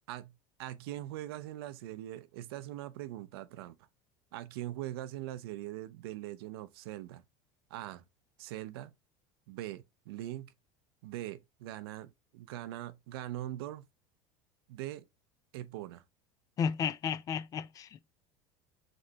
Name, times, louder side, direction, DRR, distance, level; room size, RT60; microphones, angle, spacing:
voice 1, 0.6-3.8 4.3-7.2 7.7-8.0 8.4-8.9 9.5-10.5 11.0-13.8 14.7-15.0 15.5-16.0, right 14 dB, 90° right, 0.6 m, -41 dB
voice 2, 16.6-18.0, left 7 dB, 30° left, 0.3 m, -33 dB
5.2 x 3.2 x 2.8 m
supercardioid pair, 140°, 12 cm